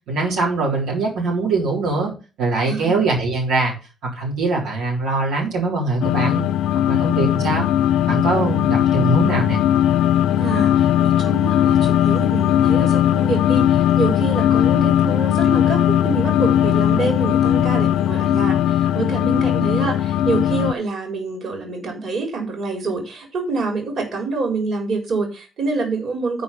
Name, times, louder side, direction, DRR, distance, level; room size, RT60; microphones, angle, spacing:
voice 1, 0.1-2.1 2.4-3.7 4.0-6.6 6.9-7.7 8.1-9.6, right 3 dB, 85° right, -3 dB, 3.8 m, -22 dB
sound 1, 6.0-20.7, left 11 dB, 85° left, 0.4 m, -18 dB
voice 2, 10.4-26.4, right 3 dB, 60° right, 3 dB, 4.2 m, -26 dB
9.1 x 5.0 x 6.9 m, 0.32 s
cardioid pair, 90°, 0 cm